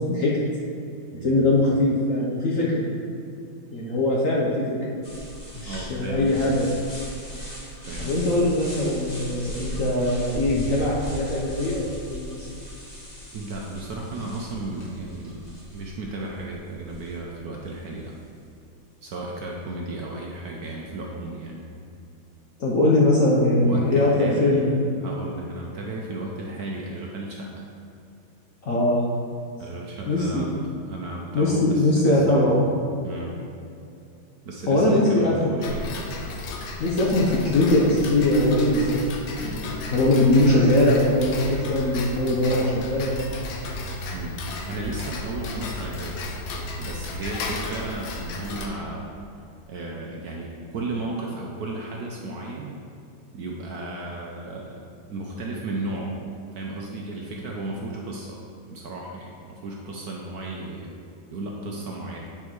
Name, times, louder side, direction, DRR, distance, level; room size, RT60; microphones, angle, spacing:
voice 1, 1.2-2.8 3.7-5.0 5.6-6.7 8.0-12.5 22.6-24.9 28.7-29.1 30.1-30.5 31.3-32.6 34.7-35.6 36.8-39.0 39.4-43.2, left 1 dB, 55° left, -4 dB, 1.0 m, -21 dB
sound 1, 5.0-17.6, equal, 25° left, 1.2 m, -38 dB
voice 2, 5.7-6.6 7.8-8.4 13.3-15.4 15.7-18.1 19.0-21.6 23.6-24.6 25.0-27.7 29.6-32.5 33.0-33.4 34.4-36.0 44.1-44.4 44.7-46.2 46.8-49.1 49.7-52.8 53.3-54.8 55.1-56.2 56.5-58.4 58.7-60.9 61.3-62.2, right 2 dB, 60° right, -2 dB, 1.0 m, -34 dB
Tick-tock, 35.6-48.7, left 2 dB, 75° left, 1.5 m, -34 dB
8.8 x 4.4 x 4.7 m, 2.6 s
omnidirectional pair, 2.2 m